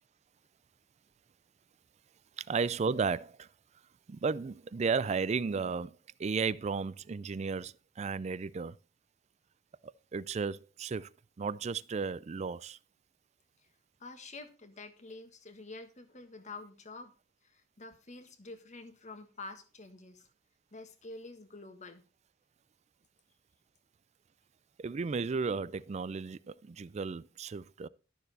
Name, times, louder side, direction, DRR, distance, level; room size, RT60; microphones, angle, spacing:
voice 1, 2.5-3.3 4.1-5.9 6.2-7.7 8.0-8.7 10.1-11.0 11.4-12.8 24.8-26.4 26.8-27.9, right 5 dB, 35° right, 0.4 m, -33 dB
voice 2, 14.0-17.1 17.4-20.3 20.7-22.0, left 3 dB, 40° left, 1.5 m, -48 dB
12.0 x 6.8 x 4.1 m
head